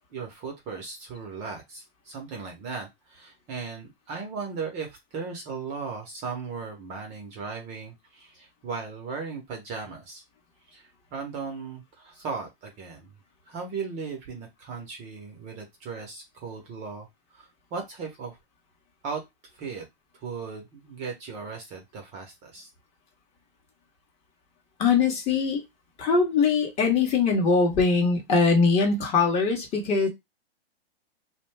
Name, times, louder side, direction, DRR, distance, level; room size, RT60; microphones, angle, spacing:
voice 1, 0.1-10.2 10.7-13.1 13.5-17.1 17.3-18.4 19.0-19.2 19.5-19.9 20.1-22.7, right 5 dB, 20° right, 0.6 m, -37 dB
voice 2, 24.8-25.6 26.0-30.1, left 4 dB, 20° left, 0.8 m, -22 dB
2.5 x 2.1 x 3.2 m
hypercardioid pair, 140°, 31 cm